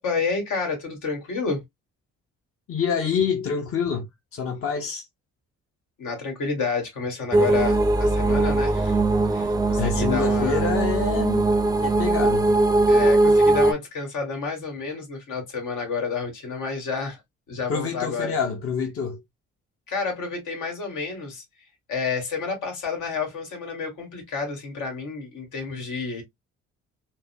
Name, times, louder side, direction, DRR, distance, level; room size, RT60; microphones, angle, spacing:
voice 1, 0.0-1.6 6.0-9.0 9.3-10.7 12.9-17.2 17.5-18.3 19.9-21.4 21.9-26.2, left 5 dB, 80° left, 1.7 m, -30 dB
voice 2, 2.7-5.1 9.8-11.5 11.8-12.4 17.7-19.2, left 6 dB, 45° left, 0.8 m, -27 dB
sound 1, 7.3-13.7, right 2 dB, 15° right, 0.4 m, -20 dB
3.8 x 2.1 x 2.6 m
cardioid pair, 90°, 30 cm